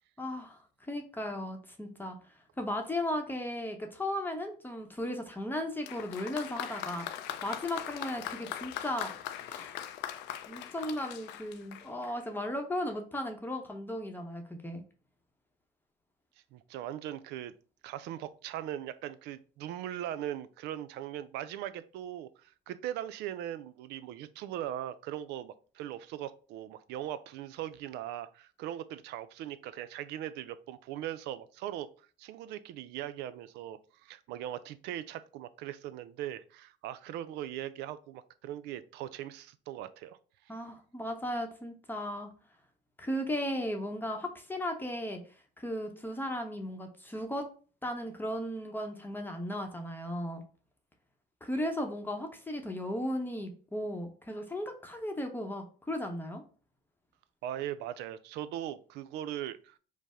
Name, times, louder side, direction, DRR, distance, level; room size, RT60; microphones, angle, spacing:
voice 1, 0.2-0.6 0.9-2.2 2.6-7.1 7.4-9.1 9.5-9.9 10.5-14.8 40.5-42.3 43.0-45.2 45.6-47.5 47.8-50.4 51.4-56.4, left 1 dB, 10° left, 4 dB, 0.8 m, -36 dB
Applause, 5.8-12.3, left 11 dB, 85° left, 0.5 m, -41 dB
voice 2, 16.5-17.5 17.8-40.2 40.5-40.6 57.4-59.8, right 12 dB, 85° right, 14 dB, 0.4 m, -40 dB
5.3 x 2.0 x 4.8 m, 0.39 s
cardioid pair, 110°, 17 cm